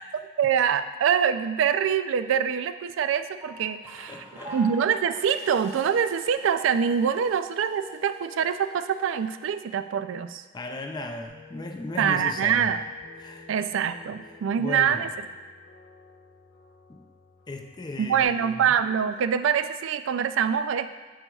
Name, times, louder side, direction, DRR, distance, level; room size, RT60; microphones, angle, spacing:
voice 1, 0.4-4.2 4.5-10.4 12.0-12.8 13.5-15.1 18.0-20.9, right 7 dB, 75° right, 11 dB, 0.3 m, -25 dB
Piano, 3.4-10.1, equal, 35° right, 1.9 m, -47 dB
Water tap faucet, 3.8-9.4 10.6-10.8, right 1 dB, 15° right, 0.7 m, -51 dB
voice 2, 4.1-4.6 10.5-12.8 13.2-13.5 14.2-15.1 16.9-17.0 17.5-18.8, left 2 dB, 20° left, 4 dB, 0.3 m, -37 dB
sound 1, 11.3-18.2, left 5 dB, 90° left, 1.0 m, -51 dB
7.1 x 6.9 x 2.3 m, 1.3 s
head